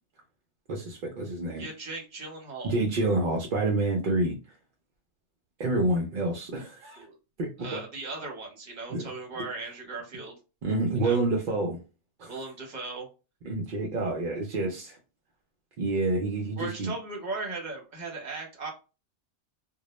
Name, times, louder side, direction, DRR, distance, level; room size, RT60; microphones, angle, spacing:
voice 1, 0.7-1.6 2.6-4.4 5.6-7.1 7.4-7.8 8.9-9.0 10.6-11.8 12.2-12.3 13.4-15.0 15.8-16.9, right 2 dB, 60° right, 0 dB, 0.5 m, -28 dB
voice 2, 1.6-2.8 7.0-7.2 7.6-10.3 11.0-11.2 12.3-13.1 16.6-18.7, right 3 dB, 45° right, 0 dB, 0.9 m, -37 dB
2.2 x 2.0 x 2.9 m, 0.30 s
omnidirectional pair, 1.2 m